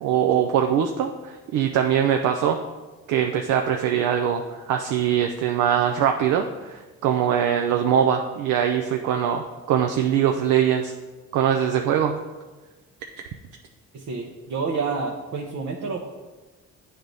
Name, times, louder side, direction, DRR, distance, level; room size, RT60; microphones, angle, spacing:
voice 1, 0.0-2.6 3.1-10.9 11.3-12.2, right 9 dB, 85° right, 4 dB, 0.5 m, -22 dB
voice 2, 13.9-16.0, right 4 dB, 65° right, -1 dB, 0.8 m, -29 dB
8.6 x 3.5 x 4.0 m, 1.2 s
cardioid pair, 90°, 30 cm